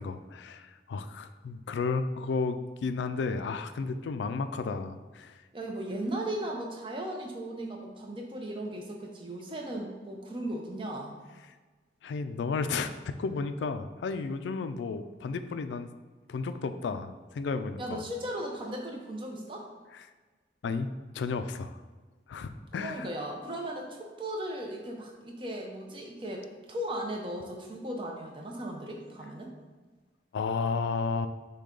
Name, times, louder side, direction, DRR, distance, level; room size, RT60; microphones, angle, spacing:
voice 1, 0.0-5.3 12.0-15.9 16.3-18.0 20.6-21.8 22.3-23.1 30.3-31.3, left 4 dB, 75° left, 10 dB, 0.3 m, -33 dB
voice 2, 5.5-11.2 17.8-19.7 22.8-29.5, right 1 dB, 25° right, 1 dB, 0.6 m, -37 dB
6.3 x 2.3 x 3.7 m, 1.3 s
head